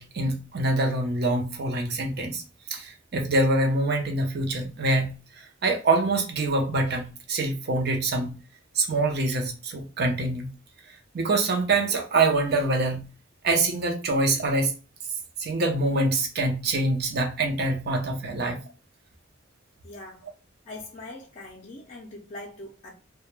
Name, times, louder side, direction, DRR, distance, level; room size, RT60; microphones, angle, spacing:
voice 1, 0.0-2.4 2.7-8.4 8.8-10.5 11.1-13.1 13.4-14.7 15.4-18.6, right 2 dB, 55° right, 0.6 m, -25 dB
voice 2, 19.8-20.3 20.7-22.9, left 2 dB, 40° left, 0.4 m, -42 dB
2.2 x 2.1 x 3.0 m
head